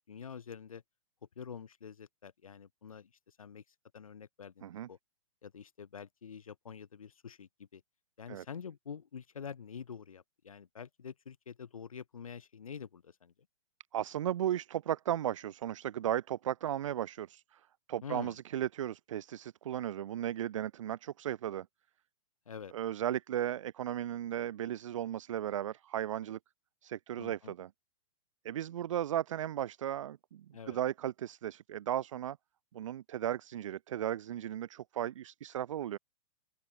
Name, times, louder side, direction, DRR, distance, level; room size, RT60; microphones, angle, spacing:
voice 1, 0.1-0.8 1.4-3.6 3.9-4.6 4.9-5.0 5.4-7.8 8.2-13.3 18.0-18.4 22.5-22.7 27.2-27.5 30.5-30.8, left 7 dB, 75° left, 2.8 m, -47 dB
voice 2, 13.9-17.6 17.9-21.7 22.7-26.4 26.8-27.7 28.4-32.4 32.7-36.0, right 11 dB, 60° right, 0.7 m, -35 dB
open air
figure-of-eight pair, 110°, 18 cm